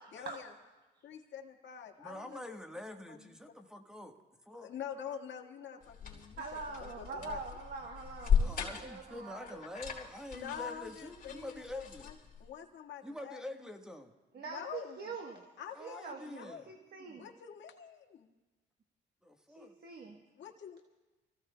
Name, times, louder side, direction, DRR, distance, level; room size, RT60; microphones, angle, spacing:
voice 1, 0.1-0.5 1.0-2.6 3.1-3.4 4.6-6.4 6.8-7.4 10.3-13.4 14.4-15.1 15.6-16.7 17.1-18.3 20.3-20.8, left 8 dB, 70° left, 1 dB, 1.7 m, -46 dB
voice 2, 2.0-4.2 4.5-4.7 8.4-12.1 13.0-14.1 15.7-16.7 19.2-19.8, left 1 dB, 5° right, 4 dB, 1.3 m, -46 dB
sound 1, 5.8-12.5, left 7 dB, 45° left, 3.2 m, -37 dB
voice 3, 6.4-8.5 8.8-9.6 14.3-15.4 15.8-17.3 19.6-20.2, right 4 dB, 55° right, 2 dB, 1.2 m, -44 dB
29.5 x 15.5 x 2.2 m, 1.2 s
cardioid pair, 90°, 20 cm